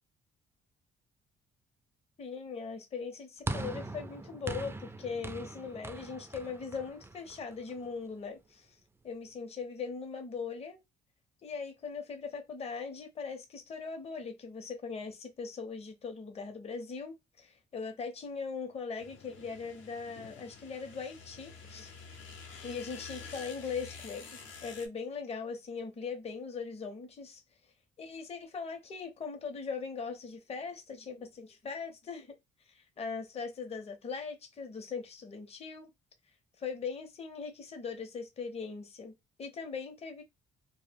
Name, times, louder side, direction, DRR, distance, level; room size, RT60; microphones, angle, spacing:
voice 1, 2.2-8.7 9.0-10.8 11.4-21.9 22.6-27.4 28.0-32.4 32.7-35.9 36.6-40.2, left 5 dB, 30° left, 0.6 m, -40 dB
sound 1, 3.5-7.9, right 2 dB, 10° right, 0.3 m, -41 dB
sound 2, 19.0-24.9, left 5 dB, 75° left, 0.7 m, -49 dB
2.1 x 2.0 x 3.3 m
cardioid pair, 90°, 20 cm